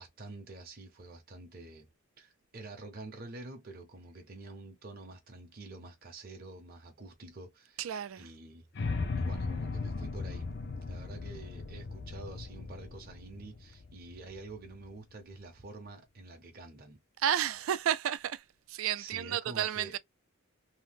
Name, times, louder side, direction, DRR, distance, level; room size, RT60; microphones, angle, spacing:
voice 1, 0.0-1.9 2.2-7.9 8.2-8.7 9.2-10.5 10.9-17.0 19.0-19.9, right 2 dB, 45° right, 0.7 m, -47 dB
voice 2, 7.8-8.3 17.2-20.0, right 10 dB, 70° right, 0.3 m, -32 dB
sound 1, 8.7-14.9, left 3 dB, 55° left, 0.5 m, -37 dB
2.8 x 2.0 x 3.3 m
head